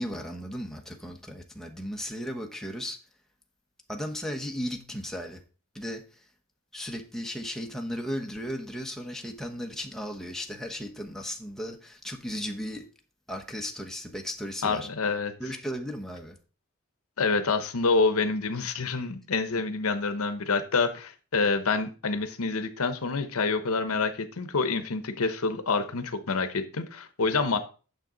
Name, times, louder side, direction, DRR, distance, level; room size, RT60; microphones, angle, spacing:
voice 1, 0.0-3.0 3.9-5.4 5.7-6.3 6.7-12.9 13.3-14.9 15.4-16.4, equal, ahead, 1.1 m, -35 dB
voice 2, 14.6-15.3 17.2-27.6, left 4 dB, 70° left, 0.9 m, -27 dB
9.1 x 6.7 x 3.9 m
head